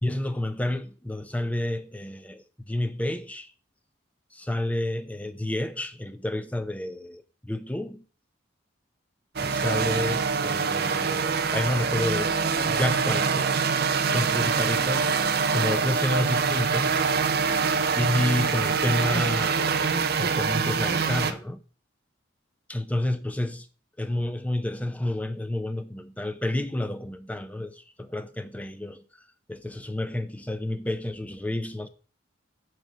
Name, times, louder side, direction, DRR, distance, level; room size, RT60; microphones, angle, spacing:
voice 1, 0.0-3.5 4.3-8.0 9.4-12.4 12.7-13.7 14.1-15.1 15.5-17.0 18.0-21.6 22.7-23.7 24.0-29.0 29.5-31.9, left 1 dB, 5° left, 0.5 m, -30 dB
sound 1, 9.4-21.3, right 5 dB, 50° right, 0.6 m, -25 dB
8.9 x 3.2 x 6.3 m
head